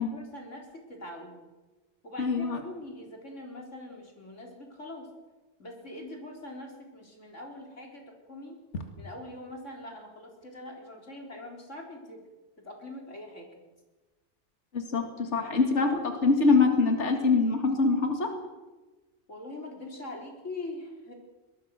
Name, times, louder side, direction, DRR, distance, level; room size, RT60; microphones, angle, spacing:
voice 1, 0.0-1.4 2.0-5.1 5.6-8.6 9.0-12.3 12.6-13.5 15.3-15.9 19.3-21.1, left 1 dB, 90° left, 1 dB, 4.5 m, -43 dB
voice 2, 2.2-2.6 14.7-18.3, left 4 dB, 70° left, 4 dB, 2.5 m, -24 dB
22.5 x 20.5 x 6.5 m, 1.2 s
omnidirectional pair, 1.2 m